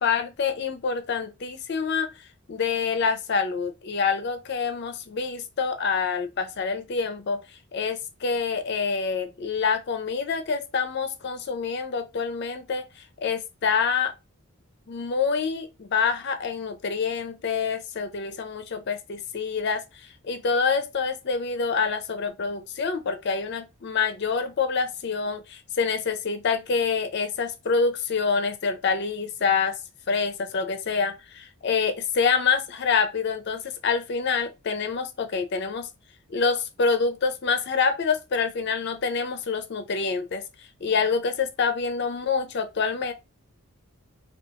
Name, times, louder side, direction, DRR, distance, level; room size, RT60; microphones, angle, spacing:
voice 1, 0.0-2.1 2.5-7.4 7.7-12.8 13.2-14.1 14.9-19.8 20.2-29.8 30.1-35.9 36.3-40.4 40.8-43.1, left 5 dB, 50° left, 0.4 m, -26 dB
2.4 x 2.3 x 2.7 m
head